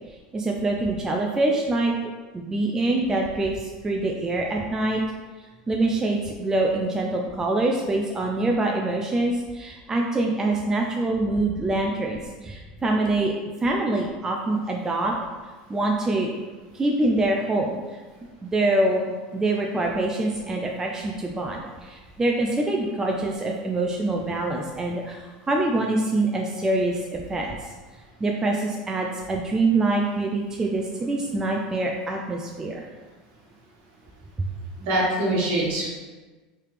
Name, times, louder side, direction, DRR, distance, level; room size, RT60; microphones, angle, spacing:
voice 1, 0.3-1.9 2.3-5.0 5.4-13.3 13.6-15.1 15.7-16.4 16.7-18.0 18.4-27.7 28.2-32.9 34.4-34.5, right 2 dB, 15° right, 0 dB, 0.3 m, -25 dB
voice 2, 34.8-35.9, right 1 dB, 60° right, -4 dB, 1.2 m, -23 dB
3.2 x 2.8 x 3.2 m, 1.3 s
supercardioid pair, 115°, 4 cm